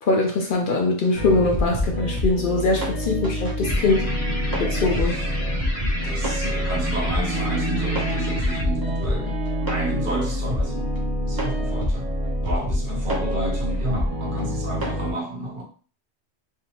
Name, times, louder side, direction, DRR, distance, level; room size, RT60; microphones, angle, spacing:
voice 1, 0.0-4.1 4.6-5.2, left 3 dB, 60° left, 0.7 m, -22 dB
sound 1, 1.1-15.1, equal, 20° right, 0.8 m, -26 dB
sound 2, 3.6-8.6, left 1 dB, 45° left, 1.0 m, -32 dB
voice 2, 6.0-9.4 9.7-10.9 11.3-12.1 12.4-15.6, right 1 dB, 50° right, 0.9 m, -31 dB
3.3 x 2.8 x 2.8 m
omnidirectional pair, 1.1 m